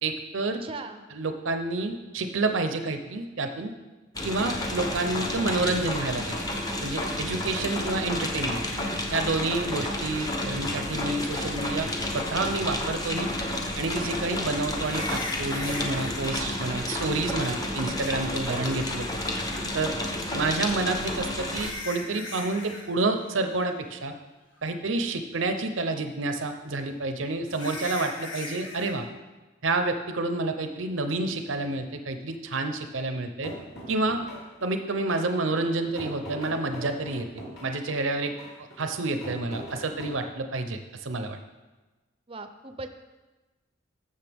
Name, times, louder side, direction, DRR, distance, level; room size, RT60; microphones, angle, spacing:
voice 1, 0.0-0.6 1.1-3.7 4.2-6.4 6.8-8.6 9.1-13.3 13.8-19.0 19.7-19.9 20.3-24.1 24.6-29.1 29.6-33.5 33.9-34.2 34.6-37.3 37.6-38.3 38.8-41.4, right 2 dB, 85° right, 6 dB, 0.7 m, -29 dB
voice 2, 0.6-1.0 18.5-18.7 42.3-42.9, right 3 dB, 30° right, 8 dB, 0.6 m, -39 dB
sound 1, 4.1-21.7, left 1 dB, 20° left, 0.9 m, -31 dB
sound 2, 12.9-13.0 14.8-16.2 18.0-18.1 20.7-22.9 23.1-23.5 23.9-24.0 24.6-24.7 27.5-28.9, left 2 dB, 85° left, 1.9 m, -39 dB
sound 3, 33.4-40.1, equal, 60° left, 3.4 m, -41 dB
14.5 x 6.6 x 3.5 m, 1.2 s
head